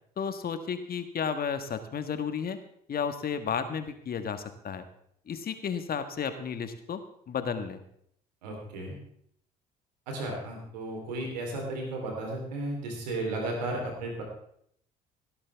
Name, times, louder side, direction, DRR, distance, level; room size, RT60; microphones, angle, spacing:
voice 1, 0.2-2.6 2.9-4.8 5.3-7.0 7.3-7.8, left 7 dB, 45° left, 9 dB, 1.6 m, -32 dB
voice 2, 8.4-9.0 10.1-14.2, right 2 dB, 85° right, 0 dB, 3.8 m, -34 dB
17.5 x 12.5 x 3.6 m, 0.68 s
hypercardioid pair, 55°, 21 cm